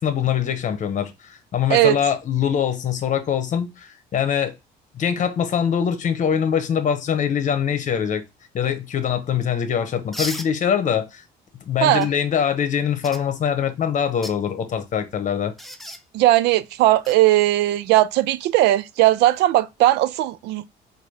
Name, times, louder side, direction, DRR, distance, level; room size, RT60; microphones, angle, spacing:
voice 1, 0.0-4.5 4.9-8.2 8.5-11.2 11.7-15.5, left 8 dB, 45° left, 1.0 m, -23 dB
sound 1, 10.1-10.5 12.0-12.1 13.0-13.2 14.1-14.4 15.6-16.0 17.0-17.2 19.2-19.4, left 1 dB, ahead, 0.5 m, -33 dB
voice 2, 16.1-20.7, right 15 dB, 85° right, 0.4 m, -18 dB
4.0 x 2.7 x 4.7 m
cardioid pair, 110°, 17 cm